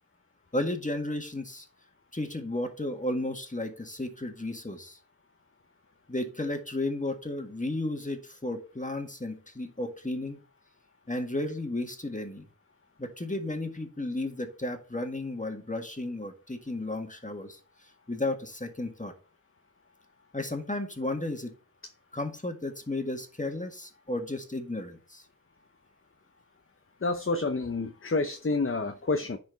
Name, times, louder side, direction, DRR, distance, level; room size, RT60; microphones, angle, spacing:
voice 1, 0.5-1.7 2.1-5.0 6.1-10.4 11.1-12.4 13.0-17.6 18.1-19.1 20.3-21.5 22.1-25.2, left 2 dB, 20° left, 1.7 m, -33 dB
voice 2, 27.0-29.4, left 3 dB, 35° left, 0.7 m, -28 dB
10.5 x 4.4 x 4.1 m
wide cardioid pair, 40°, 35 cm